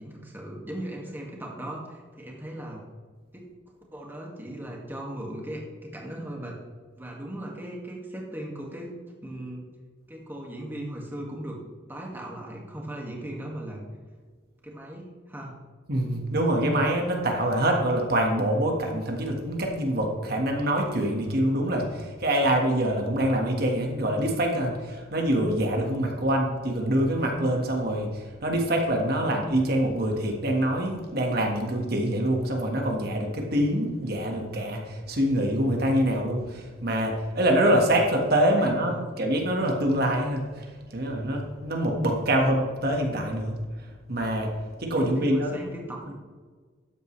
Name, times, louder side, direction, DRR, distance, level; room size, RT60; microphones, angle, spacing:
voice 1, 0.0-2.8 3.3-3.4 3.9-6.6 7.0-8.9 9.2-9.7 10.1-11.6 11.9-13.8 14.6-15.6 38.6-39.0 45.0-46.1, right 1 dB, 10° right, -2 dB, 2.0 m, -38 dB
voice 2, 15.9-44.5 44.8-45.7, right 1 dB, 55° right, 1 dB, 1.6 m, -25 dB
13.0 x 9.1 x 3.3 m, 1.5 s
head